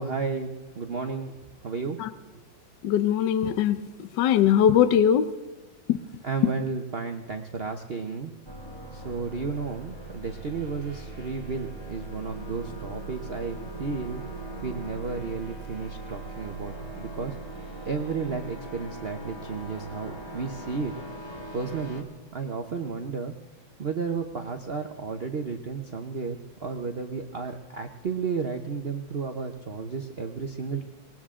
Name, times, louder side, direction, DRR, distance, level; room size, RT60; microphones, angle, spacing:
voice 1, 0.0-1.3 1.6-2.0 6.2-8.3 8.9-14.2 14.6-17.4 17.9-20.9 21.5-23.3 23.8-30.8, right 5 dB, 45° right, 5 dB, 0.8 m, -33 dB
voice 2, 2.8-3.8 4.2-5.3 5.9-6.0, left 9 dB, 70° left, 13 dB, 1.4 m, -20 dB
sound 1, 8.5-22.0, right 2 dB, 15° left, 2.0 m, -40 dB
20.0 x 19.0 x 3.7 m, 1.2 s
omnidirectional pair, 2.1 m